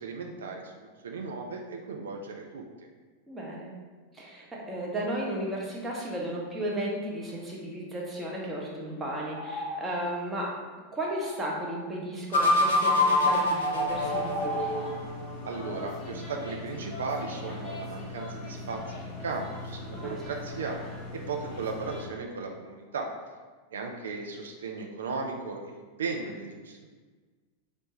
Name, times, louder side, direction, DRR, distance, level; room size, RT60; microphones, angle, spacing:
voice 1, 0.0-2.9 15.4-20.8 21.1-23.1 23.7-26.9, right 4 dB, 65° right, 2 dB, 0.3 m, -36 dB
voice 2, 3.3-3.8 4.1-10.5 10.9-14.6 19.9-20.2, right 1 dB, 10° right, -3 dB, 0.8 m, -34 dB
sound 1, 9.3-9.9 10.3-10.4 11.0-11.9 13.4-13.6 14.1-14.9, right 2 dB, 50° right, 0.9 m, -37 dB
sound 2, 12.3-15.2, left 2 dB, 65° left, 0.5 m, -25 dB
sound 3, 13.9-22.1, left 2 dB, 30° left, 0.8 m, -40 dB
4.3 x 2.1 x 2.9 m, 1.4 s
figure-of-eight pair, 90°, 0 cm